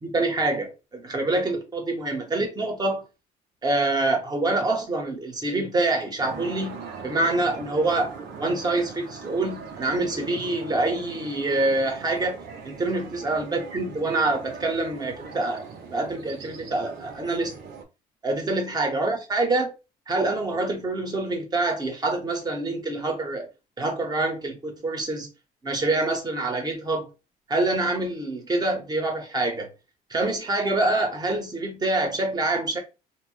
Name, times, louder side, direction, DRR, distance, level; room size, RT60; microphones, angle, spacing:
voice 1, 0.0-3.0 3.6-12.4 12.6-17.5 18.2-19.7 20.1-23.5 23.8-25.3 25.6-27.1 27.5-29.7 30.1-32.8, right 2 dB, 25° right, 1.0 m, -26 dB
sound 1, 6.2-17.8, right 5 dB, 75° right, 0.7 m, -40 dB
2.9 x 2.1 x 3.1 m
cardioid pair, 110°, 17 cm